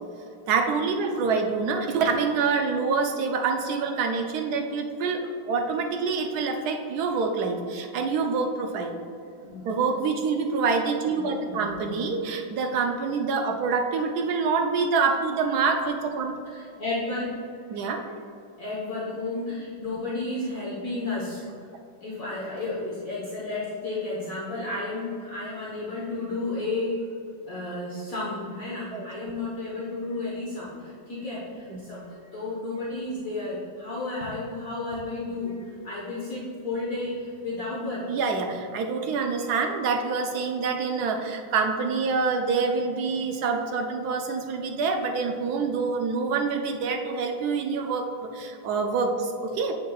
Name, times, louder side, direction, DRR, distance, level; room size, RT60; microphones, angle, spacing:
voice 1, 0.5-9.0 9.6-16.4 17.7-18.0 28.9-29.1 31.7-31.8 38.1-49.7, right 4 dB, 70° right, 4 dB, 1.0 m, -26 dB
voice 2, 11.4-12.0 16.5-17.4 18.6-21.5 22.0-27.1 27.5-38.1, left 2 dB, 50° left, -7 dB, 1.5 m, -32 dB
7.5 x 7.2 x 2.3 m, 2.4 s
omnidirectional pair, 2.1 m